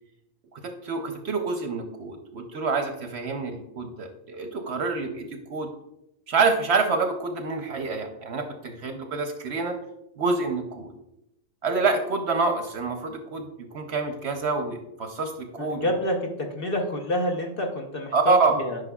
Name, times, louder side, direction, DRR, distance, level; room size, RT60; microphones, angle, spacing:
voice 1, 0.5-5.7 6.3-9.8 10.2-10.9 11.6-15.9 18.1-18.6, right 4 dB, 60° right, 5 dB, 0.8 m, -27 dB
voice 2, 15.6-16.2 16.5-18.8, left 1 dB, 45° left, 2 dB, 0.9 m, -28 dB
9.7 x 5.1 x 2.3 m, 0.84 s
omnidirectional pair, 1.5 m